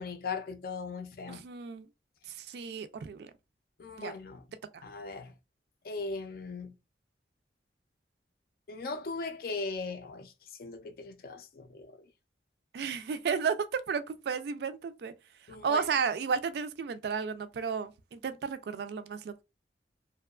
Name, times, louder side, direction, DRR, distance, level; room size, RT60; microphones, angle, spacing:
voice 1, 0.0-1.4 3.8-4.4 4.8-5.3 5.8-6.7 8.7-10.3 10.6-11.9 15.5-15.9, left 4 dB, 55° left, 0.4 m, -38 dB
voice 2, 1.3-1.9 2.3-3.3 4.0-4.1 4.7-4.8 12.7-15.1 15.5-19.4, right 6 dB, 65° right, 0.3 m, -33 dB
2.7 x 2.2 x 2.3 m
head